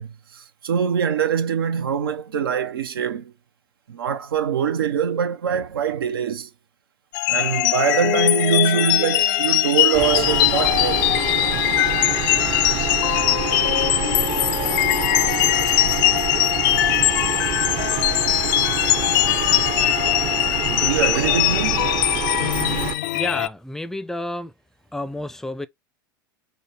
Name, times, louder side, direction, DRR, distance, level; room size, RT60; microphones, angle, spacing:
voice 1, 0.0-3.3 3.9-6.5 7.3-11.1 20.7-21.9, right 7 dB, 85° right, 0.6 m, -23 dB
sound 1, 7.1-23.5, left 17 dB, 60° left, 0.4 m, -21 dB
sound 2, 9.9-22.9, right 10 dB, 45° right, 0.7 m, -27 dB
voice 2, 23.0-24.5 24.9-25.7, left 1 dB, 5° left, 0.5 m, -30 dB
5.1 x 2.1 x 4.2 m
hypercardioid pair, 95°, 12 cm